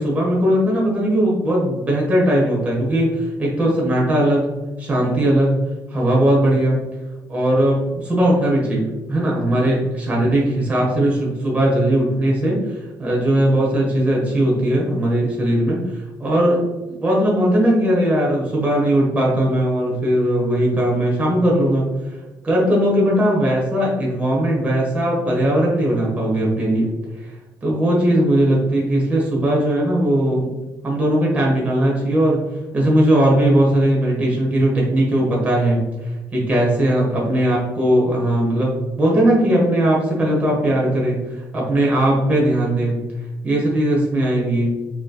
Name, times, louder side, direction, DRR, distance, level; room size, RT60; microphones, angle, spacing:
voice 1, 0.0-4.5 4.8-5.5 5.9-6.8 7.3-8.8 9.1-12.6 13.0-15.8 16.2-16.6 17.0-21.8 22.4-26.9 27.6-30.5 30.8-32.4 32.7-35.8 36.3-43.0 43.4-44.8, right 1 dB, 20° right, -4 dB, 1.4 m, -18 dB
5.3 x 3.2 x 2.3 m, 1.2 s
cardioid pair, 175°, 8 cm